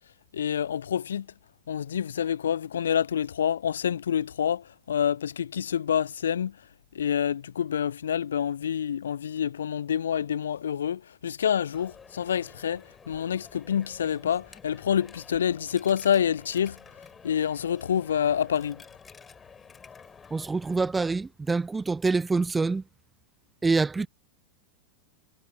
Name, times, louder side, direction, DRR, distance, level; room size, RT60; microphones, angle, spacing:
voice 1, 0.3-1.3 1.7-6.6 6.9-16.8 17.2-18.8, left 8 dB, 65° left, 0.4 m, -27 dB
Coin (dropping), 11.7-20.9, left 6 dB, 15° left, 3.6 m, -51 dB
voice 2, 20.3-22.8 23.6-24.1, right 3 dB, 10° right, 0.3 m, -26 dB
figure-of-eight pair, 90°, 0 cm